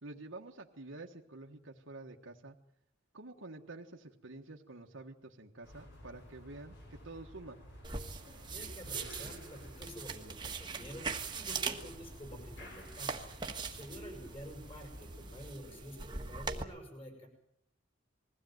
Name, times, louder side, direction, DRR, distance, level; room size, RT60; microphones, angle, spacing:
voice 1, 0.0-2.6 3.1-7.6, right 2 dB, 70° right, 0 dB, 1.5 m, -49 dB
sound 1, 5.6-15.5, equal, 60° left, 7.5 m, -52 dB
sound 2, 7.8-16.6, right 4 dB, 20° right, 1.6 m, -42 dB
voice 2, 8.5-11.1 11.3-13.3 13.6-17.3, equal, 30° left, 4 dB, 7.2 m, -49 dB
22.0 x 16.0 x 9.2 m, 0.75 s
head